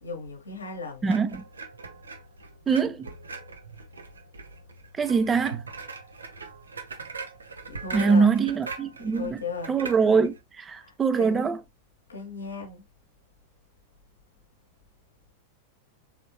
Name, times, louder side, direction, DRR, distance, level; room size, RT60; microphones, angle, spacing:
voice 1, 0.0-1.1 7.7-8.3 9.0-9.8 10.8-11.5 12.1-12.9, left 4 dB, 75° left, 1.0 m, -37 dB
voice 2, 1.0-1.4 2.7-3.1 5.0-5.6 7.9-9.4 9.7-11.6, right 5 dB, 20° right, 0.5 m, -23 dB
sound 1, 1.0-10.4, right 4 dB, 75° right, 0.6 m, -41 dB
4.3 x 3.5 x 2.7 m
figure-of-eight pair, 90°, 0 cm